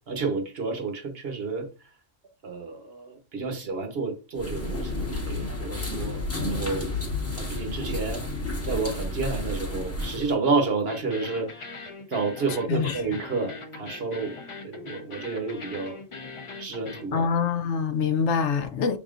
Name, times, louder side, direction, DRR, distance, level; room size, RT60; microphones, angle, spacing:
voice 1, 0.1-1.7 2.4-5.0 5.2-6.9 7.3-8.2 8.6-11.7 12.1-14.4 14.6-16.0 16.6-17.3, right 4 dB, 55° right, 1.0 m, -30 dB
sound 1, 4.4-10.3, left 2 dB, 15° left, 0.8 m, -31 dB
sound 2, 10.9-17.1, left 4 dB, 35° left, 0.5 m, -41 dB
voice 2, 17.1-19.0, left 6 dB, 70° left, 0.8 m, -25 dB
5.4 x 3.5 x 2.4 m
omnidirectional pair, 1.3 m